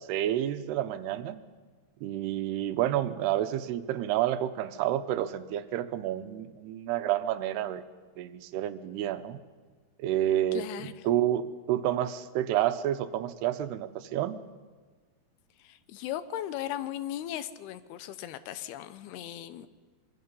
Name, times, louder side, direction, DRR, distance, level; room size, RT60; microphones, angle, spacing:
voice 1, 0.0-1.4 2.0-7.8 8.2-9.4 10.0-14.4, right 12 dB, 90° right, 11 dB, 2.9 m, -29 dB
voice 2, 10.5-10.9 15.6-19.7, left 12 dB, 80° left, 13 dB, 2.8 m, -37 dB
25.0 x 22.5 x 5.5 m, 1.4 s
omnidirectional pair, 4.6 m